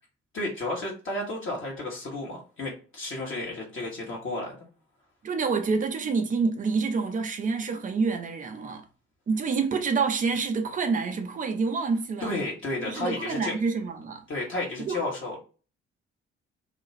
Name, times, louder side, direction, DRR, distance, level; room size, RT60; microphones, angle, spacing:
voice 1, 0.3-4.6 12.2-13.5 14.3-15.4, left 2 dB, 35° left, 1.1 m, -32 dB
voice 2, 5.2-8.8 9.3-12.3 12.8-14.2 14.9-15.0, right 4 dB, 25° right, 0.6 m, -27 dB
2.4 x 2.3 x 3.0 m
figure-of-eight pair, 45°, 33 cm